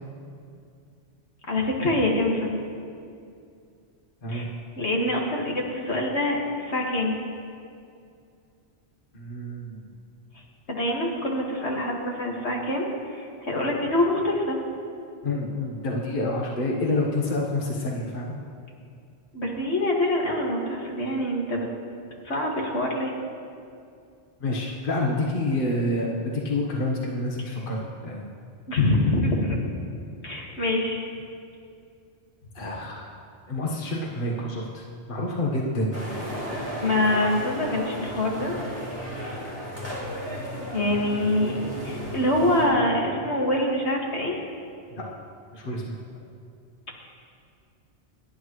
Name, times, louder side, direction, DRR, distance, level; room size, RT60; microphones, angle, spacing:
voice 1, 1.5-2.6 4.3-4.5 4.8-7.2 10.7-14.6 19.3-21.7 22.2-23.1 28.7-29.6 30.2-31.1 36.8-38.7 40.7-41.6 41.8-44.4, left 1 dB, 75° left, -2 dB, 2.3 m, -25 dB
voice 2, 9.1-9.9 15.2-18.3 24.4-28.3 32.5-33.1 33.5-36.0 39.2-39.4 44.9-45.0 45.5-46.0, left 1 dB, 50° left, -2 dB, 1.5 m, -28 dB
sound 1, 35.9-42.7, equal, 15° left, 4.1 m, -34 dB
28.5 x 10.0 x 3.2 m, 2.4 s
omnidirectional pair, 1.1 m